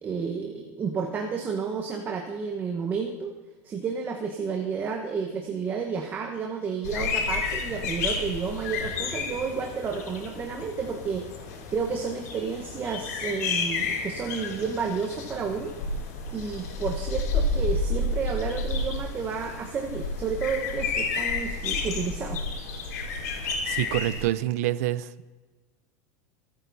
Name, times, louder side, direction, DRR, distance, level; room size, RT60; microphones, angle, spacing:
voice 1, 0.0-3.3 3.6-11.2 11.7-15.8 16.3-22.4, right 5 dB, 25° right, 2 dB, 1.2 m, -31 dB
sound 1, 6.8-24.3, left 3 dB, 90° left, 4.3 m, -31 dB
voice 2, 23.4-25.1, right 14 dB, 70° right, 16 dB, 0.7 m, -27 dB
26.0 x 9.2 x 4.2 m, 1.3 s
supercardioid pair, 150°, 8 cm